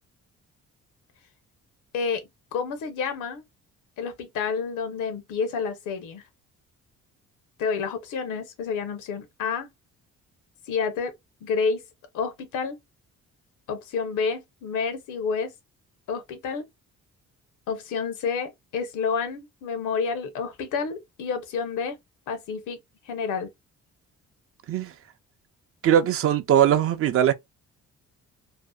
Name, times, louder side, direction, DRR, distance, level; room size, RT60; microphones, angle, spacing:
voice 1, 2.5-3.4 4.0-6.2 7.6-9.7 10.7-11.1 11.4-11.8 12.1-12.8 13.7-15.5 16.1-16.6 17.7-22.0 22.3-22.8 23.0-23.5, left 5 dB, 85° left, 0.7 m, -29 dB
voice 2, 25.8-27.3, right 10 dB, 50° right, 0.4 m, -20 dB
2.7 x 2.0 x 2.2 m
cardioid pair, 90°, 30 cm